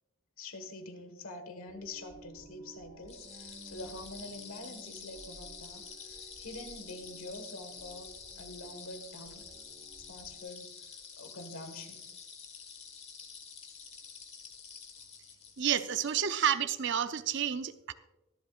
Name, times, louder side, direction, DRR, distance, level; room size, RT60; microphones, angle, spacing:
voice 1, 0.4-9.5 9.9-12.1, left 2 dB, 90° left, 7 dB, 1.5 m, -46 dB
sound 1, 1.7-10.4, right 1 dB, 40° right, 1.5 m, -55 dB
sound 2, 3.1-16.5, left 6 dB, 30° left, 1.5 m, -49 dB
voice 2, 15.6-17.9, right 9 dB, 60° right, 11 dB, 0.6 m, -30 dB
23.5 x 7.9 x 2.4 m, 1.0 s
head